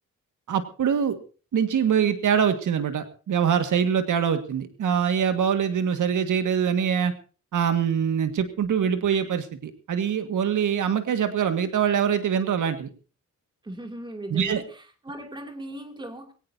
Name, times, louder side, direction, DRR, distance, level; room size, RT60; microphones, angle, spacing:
voice 1, 0.5-1.2 1.5-7.1 7.5-12.9 14.3-14.6, right 8 dB, 80° right, 8 dB, 1.9 m, -24 dB
voice 2, 13.6-16.3, right 1 dB, 15° right, 4 dB, 2.8 m, -38 dB
22.0 x 17.5 x 2.8 m, 0.37 s
wide cardioid pair, 175°, 31 cm